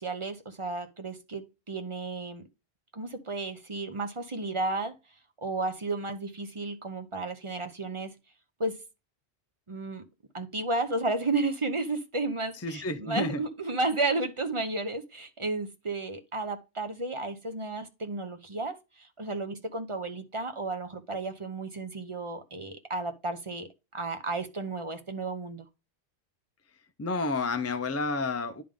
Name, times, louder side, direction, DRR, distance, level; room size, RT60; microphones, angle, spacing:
voice 1, 0.0-2.4 2.9-4.9 5.4-8.1 8.6-8.8 9.7-10.0 10.3-25.6, right 3 dB, 30° right, 0.8 m, -33 dB
voice 2, 12.6-13.4 27.0-28.6, left 3 dB, 25° left, 0.3 m, -30 dB
10.5 x 3.6 x 3.6 m
omnidirectional pair, 1.1 m